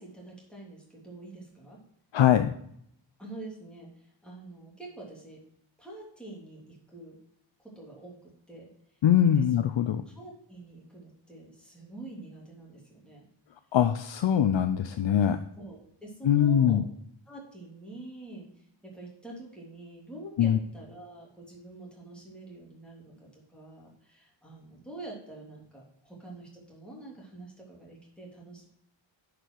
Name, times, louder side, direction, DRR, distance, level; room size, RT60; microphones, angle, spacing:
voice 1, 0.0-1.8 3.2-5.4 5.8-7.2 7.6-8.7 9.4-9.5 10.1-13.3 15.6-16.8 17.3-18.5 18.8-28.7, right 2 dB, ahead, -4 dB, 2.8 m, -46 dB
voice 2, 2.1-2.5 9.0-10.0 13.7-15.4 16.2-16.8 20.4-20.6, left 9 dB, 75° left, 8 dB, 0.6 m, -22 dB
10.0 x 5.0 x 4.5 m, 0.70 s
wide cardioid pair, 170°, 46 cm